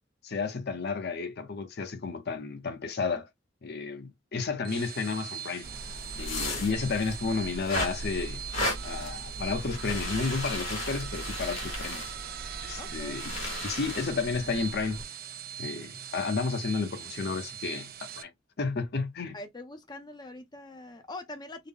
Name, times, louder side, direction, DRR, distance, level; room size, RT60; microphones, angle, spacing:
voice 1, 0.2-3.3 3.6-5.7 6.2-8.4 8.8-12.1 12.6-13.3 13.6-15.0 15.6-18.3 18.6-19.4, left 4 dB, 55° left, 0.7 m, -32 dB
sound 1, 4.5-18.2, right 9 dB, 50° right, 0.5 m, -41 dB
sound 2, 5.6-15.0, left 1 dB, 90° left, 1.9 m, -36 dB
voice 2, 12.8-13.3 19.3-21.7, left 2 dB, 20° left, 0.5 m, -43 dB
3.7 x 2.0 x 3.6 m
head